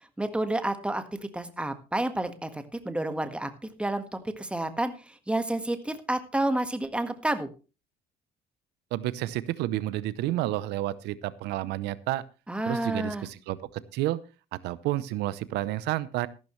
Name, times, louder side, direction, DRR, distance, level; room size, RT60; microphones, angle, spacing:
voice 1, 0.2-7.5 12.5-13.3, right 1 dB, 5° right, 9 dB, 1.6 m, -30 dB
voice 2, 8.9-12.2 12.7-14.2 14.6-16.3, right 15 dB, 85° right, 17 dB, 0.7 m, -30 dB
14.0 x 12.0 x 3.2 m, 0.32 s
cardioid pair, 110°, 17 cm